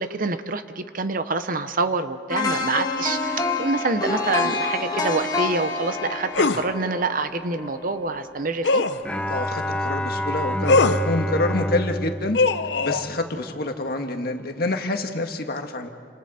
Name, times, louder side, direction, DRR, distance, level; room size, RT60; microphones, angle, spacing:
voice 1, 0.0-8.8, right 3 dB, 50° right, 10 dB, 0.9 m, -26 dB
sound 1, 2.3-8.3 8.7-8.8, left 3 dB, 20° left, 1.9 m, -28 dB
sound 2, 6.3-6.6 8.6-9.0 10.6-11.0 12.3-13.0, left 3 dB, 75° left, 0.8 m, -20 dB
Bowed string instrument, 9.0-13.5, equal, 5° left, 0.9 m, -28 dB
voice 2, 9.3-12.4 12.8-15.9, left 2 dB, 60° left, 4 dB, 1.7 m, -27 dB
29.5 x 27.0 x 4.3 m, 2.1 s
head